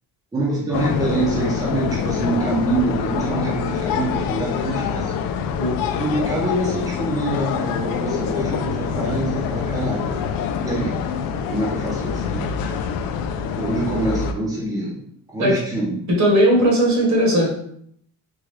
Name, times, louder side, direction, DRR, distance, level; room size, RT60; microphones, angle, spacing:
voice 1, 0.3-5.1 6.0-10.3 10.5-10.9 11.5-12.9 13.6-15.0 15.3-16.0, right 2 dB, 10° right, -6 dB, 0.8 m, -25 dB
sound 1, 0.7-14.3, left 7 dB, 65° left, 0.5 m, -25 dB
voice 2, 16.2-17.5, right 1 dB, 50° right, -1 dB, 1.4 m, -17 dB
3.8 x 2.5 x 3.2 m, 0.68 s
cardioid pair, 130°, 37 cm